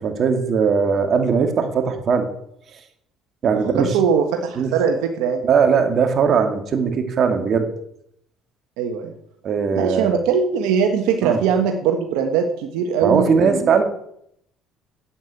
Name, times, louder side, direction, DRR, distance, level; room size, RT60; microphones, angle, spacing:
voice 1, 0.0-2.3 3.4-4.0 4.6-4.7 5.4-7.7 9.4-10.2 11.2-11.4 13.0-13.8, right 6 dB, 50° right, 6 dB, 2.3 m, -19 dB
voice 2, 3.5-5.4 8.8-9.1 9.7-13.8, right 6 dB, 85° right, 5 dB, 1.3 m, -21 dB
9.0 x 8.6 x 8.2 m, 0.73 s
supercardioid pair, 85°, 0 cm